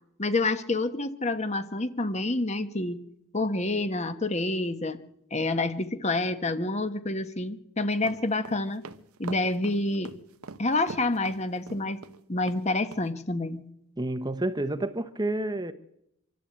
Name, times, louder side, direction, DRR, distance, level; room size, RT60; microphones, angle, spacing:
voice 1, 0.2-3.0 3.3-5.0 5.3-8.8 9.2-10.1 10.6-12.0 12.3-13.6, left 2 dB, 30° left, 1.2 m, -28 dB
sound 1, 7.9-12.2 12.5-12.6 12.9-13.0, right 4 dB, 90° right, 1.0 m, -42 dB
voice 2, 14.0-15.7, right 1 dB, 20° right, 0.9 m, -29 dB
25.5 x 13.0 x 8.7 m
head